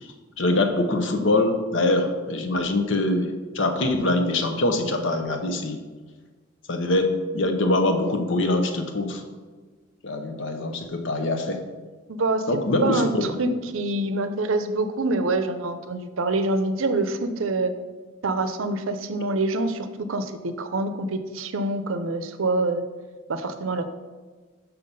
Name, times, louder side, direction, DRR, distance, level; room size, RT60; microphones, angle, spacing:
voice 1, 0.4-5.8 6.7-9.2 10.0-11.6 12.5-13.2, left 2 dB, 65° left, 6 dB, 0.8 m, -23 dB
voice 2, 12.1-12.4 12.8-17.7 18.2-22.8 23.3-23.9, right 2 dB, 75° right, 9 dB, 0.6 m, -26 dB
5.8 x 5.7 x 5.3 m, 1.4 s
head